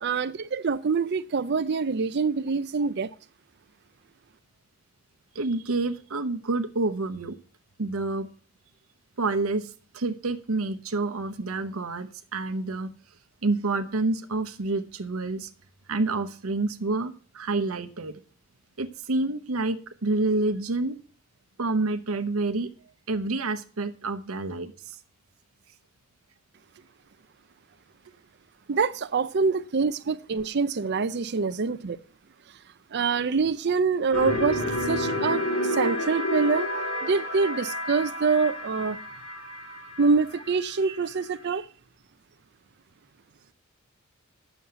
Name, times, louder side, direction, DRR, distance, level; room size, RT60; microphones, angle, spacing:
voice 1, 0.0-3.1 28.7-32.0 32.9-36.7 37.0-39.0 40.0-41.7, right 4 dB, 55° right, 0.5 m, -25 dB
voice 2, 5.3-7.3 7.8-8.3 9.2-12.9 13.4-15.5 15.9-18.2 18.8-21.0 21.6-22.7 23.1-25.0, right 3 dB, 85° right, 0.9 m, -28 dB
sound 1, 34.1-41.1, left 1 dB, 85° left, 3.2 m, -30 dB
9.5 x 7.1 x 6.7 m
head